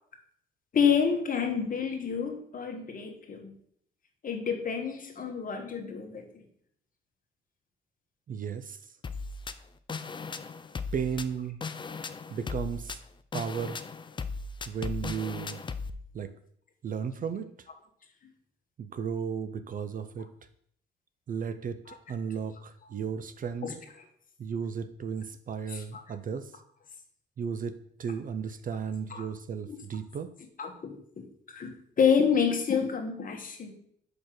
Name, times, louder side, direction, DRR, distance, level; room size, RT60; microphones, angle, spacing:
voice 1, 0.7-3.5 4.2-6.4 21.9-22.0 23.6-23.7 25.7-26.0 29.1-29.3 29.7-29.8 30.6-33.7, left 6 dB, 45° left, 4 dB, 1.3 m, -29 dB
voice 2, 8.3-8.8 10.9-11.6 12.3-13.0 13.3-13.8 14.7-15.6 16.1-16.3 16.8-17.5 18.8-20.3 21.3-23.7 24.4-26.5 27.4-30.3, right 6 dB, 45° right, 11 dB, 0.5 m, -34 dB
sound 1, 9.0-15.9, left 4 dB, 25° left, 0.4 m, -37 dB
5.1 x 4.3 x 6.0 m, 0.66 s
cardioid pair, 90°, 20 cm